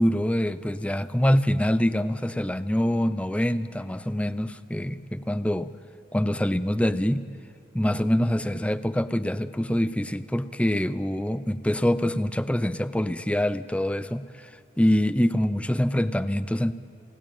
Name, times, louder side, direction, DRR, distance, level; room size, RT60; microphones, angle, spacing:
voice 1, 0.0-5.7 6.1-7.2 7.7-14.5 14.8-16.7, equal, 5° left, 13 dB, 0.6 m, -25 dB
30.0 x 17.0 x 8.8 m, 2.4 s
head